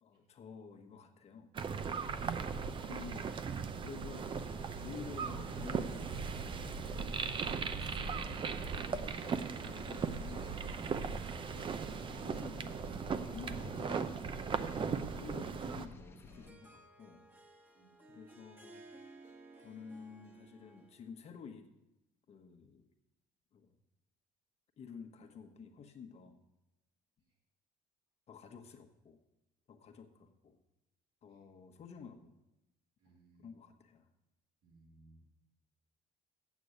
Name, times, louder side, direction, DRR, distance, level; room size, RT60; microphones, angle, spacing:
voice 1, 0.0-1.5 2.3-3.3 3.8-4.4 4.8-6.8 7.3-8.2 8.5-14.2 14.7-17.2 18.1-18.8 19.6-21.7 22.3-22.9 23.5-23.8 24.8-26.4 28.3-29.2 29.7-30.6 31.2-32.3 33.1-34.1, left 6 dB, 45° left, 6 dB, 1.2 m, -52 dB
sound 1, 1.5-15.9, right 6 dB, 35° right, 0.6 m, -38 dB
sound 2, 4.1-16.5, left 2 dB, 15° left, 1.1 m, -54 dB
Harp, 16.3-21.2, right 2 dB, 15° right, 1.3 m, -58 dB
voice 2, 33.0-33.4 34.6-35.2, right 3 dB, 75° right, -5 dB, 3.2 m, -61 dB
8.4 x 7.0 x 7.9 m, 0.94 s
cardioid pair, 115°, 15 cm